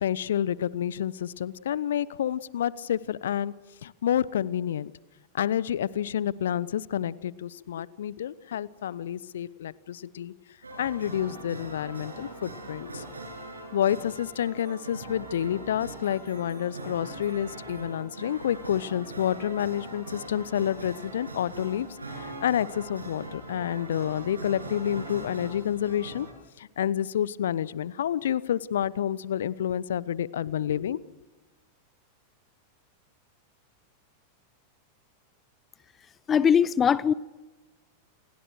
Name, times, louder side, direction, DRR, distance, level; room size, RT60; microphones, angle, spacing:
voice 1, 0.0-3.5 3.8-4.9 5.3-10.3 10.8-13.0 13.7-26.3 26.6-31.0, left 10 dB, 60° left, 0.9 m, -29 dB
sound 1, 10.6-26.3, right 2 dB, 80° right, 7.0 m, -41 dB
voice 2, 36.3-37.1, left 7 dB, 25° left, 0.8 m, -21 dB
30.0 x 28.0 x 6.5 m
figure-of-eight pair, 90°, 0 cm